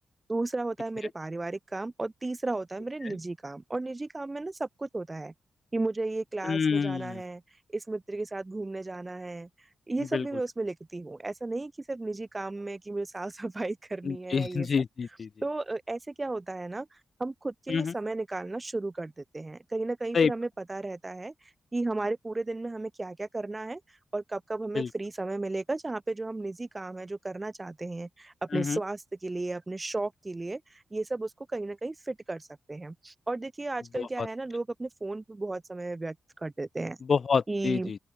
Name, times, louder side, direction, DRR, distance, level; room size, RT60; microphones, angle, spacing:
voice 1, 0.3-5.3 5.7-7.4 7.7-9.5 9.9-14.7 15.4-16.9 17.2-21.3 21.7-23.8 24.1-37.0 37.5-37.9, right 2 dB, 15° right, 1.9 m, -34 dB
voice 2, 6.4-7.2 10.1-10.3 14.0-15.3 17.7-17.9 20.1-20.3 24.7-24.9 28.5-28.8 33.9-34.3 37.1-38.0, left 5 dB, 40° left, 2.6 m, -27 dB
open air
wide cardioid pair, 140°, 0 cm